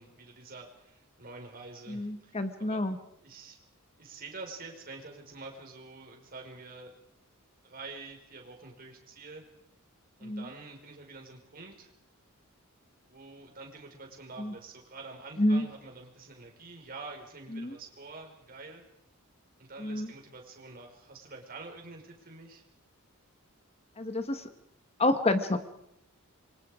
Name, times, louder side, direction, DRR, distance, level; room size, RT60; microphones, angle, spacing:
voice 1, 0.0-2.8 3.2-3.6 4.0-6.9 7.6-9.4 10.2-11.9 13.1-18.8 19.6-22.6, right 3 dB, 45° right, 1 dB, 5.1 m, -47 dB
voice 2, 1.9-3.0 10.2-10.4 14.4-14.5 15.4-15.7 17.5-17.8 19.8-20.1 24.0-24.5 25.0-25.6, left 1 dB, 30° left, 9 dB, 1.3 m, -28 dB
27.5 x 24.5 x 5.0 m, 0.81 s
head